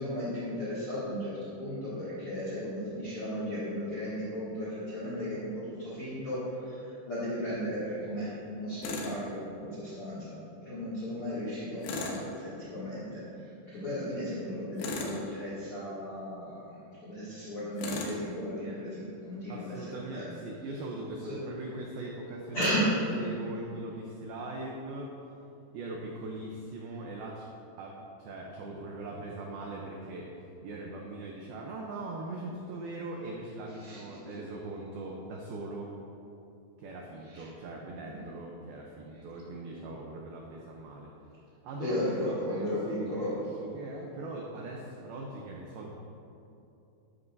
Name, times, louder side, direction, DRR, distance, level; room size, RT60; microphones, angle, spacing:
voice 1, 0.0-10.3 10.6-13.2 13.6-16.6 17.0-20.2 21.3-21.4 22.5-22.9 33.8-34.3 37.3-37.4 41.8-43.3, equal, 40° left, -10 dB, 2.3 m, -35 dB
Tools, 8.8-9.2 11.8-12.2 14.8-15.2 17.8-18.2, left 3 dB, 80° left, 3.5 m, -35 dB
voice 2, 19.5-22.7 23.2-25.1 25.7-27.5 27.8-35.9 36.8-41.1 41.6-45.9, right 2 dB, 80° right, -1 dB, 2.2 m, -40 dB
13.0 x 11.0 x 2.7 m, 2.8 s
omnidirectional pair, 5.4 m